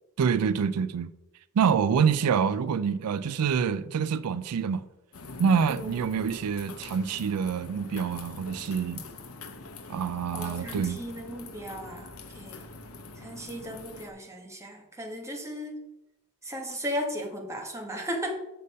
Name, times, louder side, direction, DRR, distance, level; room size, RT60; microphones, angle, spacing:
voice 1, 0.2-1.1 1.6-4.9 5.4-9.0 9.9-11.0, right 6 dB, 90° right, 0.4 m, -26 dB
sound 1, 5.1-14.1, left 3 dB, 70° left, 0.9 m, -44 dB
voice 2, 5.7-6.0 10.3-12.7 13.2-15.8 16.4-18.3, equal, 15° right, 1.5 m, -36 dB
6.7 x 6.6 x 5.4 m
head